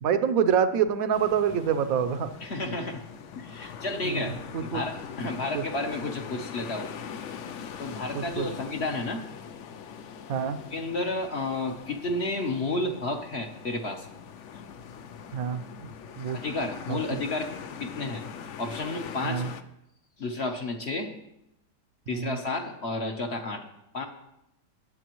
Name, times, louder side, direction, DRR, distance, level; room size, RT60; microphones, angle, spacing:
voice 1, 0.0-2.3 4.0-4.8 5.5-5.6 8.1-8.5 10.3-10.6 15.3-16.4 16.9-17.2 19.2-19.5 22.1-22.4, right 8 dB, 65° right, 10 dB, 1.1 m, -27 dB
sound 1, 1.1-19.6, left 7 dB, 65° left, 0.8 m, -42 dB
voice 2, 2.4-3.0 3.4-4.3 4.6-6.9 7.8-9.3 10.7-14.1 16.3-17.5 17.8-18.3 18.6-19.4 20.2-21.1 22.1-23.6 23.9-24.1, left 2 dB, 45° left, 3 dB, 1.1 m, -31 dB
20.5 x 7.8 x 3.1 m, 0.84 s
omnidirectional pair, 1.8 m